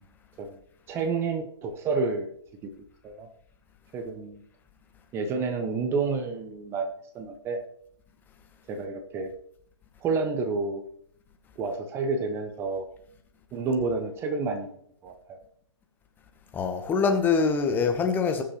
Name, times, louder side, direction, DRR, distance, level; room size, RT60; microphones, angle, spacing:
voice 1, 0.9-2.3 2.6-2.7 3.0-3.3 3.9-4.4 5.1-7.6 8.7-9.3 10.0-10.8 11.6-12.9 13.5-14.7 15.0-15.4, right 4 dB, 15° right, 0.8 m, -29 dB
voice 2, 16.5-18.4, left 5 dB, 10° left, 0.9 m, -24 dB
19.5 x 6.6 x 3.0 m
figure-of-eight pair, 130°, 15 cm